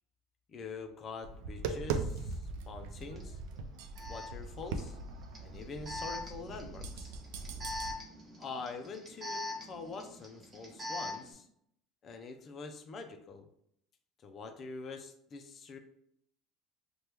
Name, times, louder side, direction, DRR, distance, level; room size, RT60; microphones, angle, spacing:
voice 1, 0.5-3.4 4.1-5.0 5.4-7.1 8.4-11.5 12.0-13.5 14.2-15.8, left 4 dB, 35° left, 7 dB, 0.3 m, -45 dB
Tap, 1.2-7.9, right 4 dB, 85° right, 0.3 m, -40 dB
Alarm, 3.2-3.3 4.0-11.3, left 2 dB, 25° right, 0.8 m, -43 dB
2.9 x 2.2 x 3.3 m, 0.71 s
cardioid pair, 130°, 0 cm